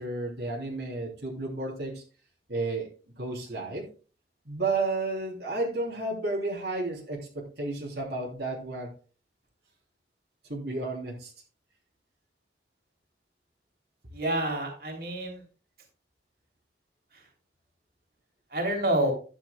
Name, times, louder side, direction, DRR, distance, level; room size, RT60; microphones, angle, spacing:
voice 1, 0.0-2.0 2.5-2.9 3.2-3.9 4.4-8.9 10.5-11.3, right 2 dB, 70° right, -2 dB, 3.2 m, -32 dB
voice 2, 14.1-15.4 18.5-19.1, right 1 dB, 55° right, 1 dB, 3.3 m, -28 dB
12.5 x 9.9 x 2.3 m, 0.35 s
head